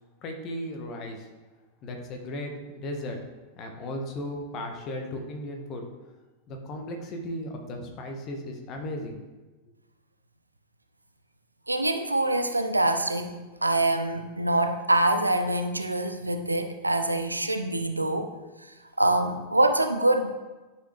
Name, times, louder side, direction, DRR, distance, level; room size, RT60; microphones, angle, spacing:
voice 1, 0.2-1.3 1.8-3.2 3.5-5.8 6.5-9.2, left 1 dB, 35° left, 3 dB, 1.4 m, -36 dB
voice 2, 11.7-13.3 13.6-18.3 19.0-20.3, right 1 dB, 85° right, 7 dB, 0.6 m, -25 dB
10.0 x 5.9 x 3.3 m, 1.2 s
figure-of-eight pair, 90°, 0 cm